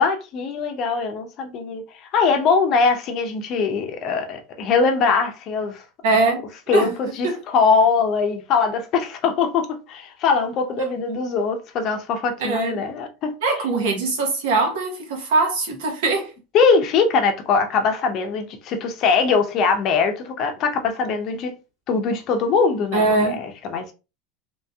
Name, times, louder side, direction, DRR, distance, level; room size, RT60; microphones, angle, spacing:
voice 1, 0.0-5.8 6.7-13.3 16.5-21.5 21.9-23.9, left 5 dB, 50° left, 0.6 m, -21 dB
voice 2, 6.0-6.5 6.7-6.9 7.2-7.4 12.4-12.8 13.4-16.3 22.9-23.4, right 3 dB, 80° right, 1.1 m, -21 dB
3.0 x 2.7 x 2.3 m
supercardioid pair, 120°, 0 cm